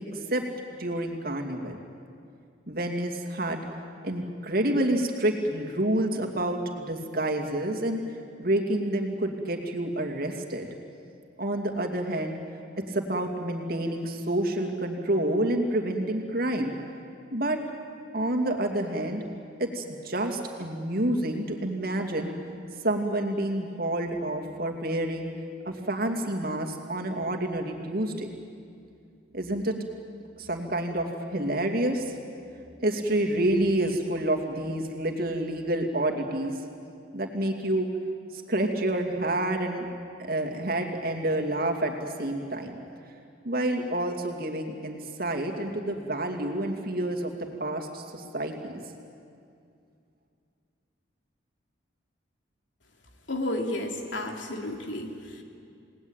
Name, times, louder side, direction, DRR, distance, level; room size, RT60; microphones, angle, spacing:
voice 1, 0.1-0.4 0.8-1.8 2.7-3.6 4.0-8.0 8.4-10.7 11.4-12.4 12.8-16.7 17.3-17.6 18.1-19.2 19.6-22.3 22.8-25.3 25.6-28.3 29.3-29.8 30.4-32.2 32.8-36.6 37.1-37.9 38.3-39.9 40.2-42.7 43.4-47.3 47.6-48.7, right 1 dB, 50° right, 2 dB, 2.6 m, -28 dB
voice 2, 53.3-55.4, left 1 dB, 75° left, 2 dB, 2.9 m, -32 dB
29.5 x 19.5 x 9.0 m, 2.4 s
head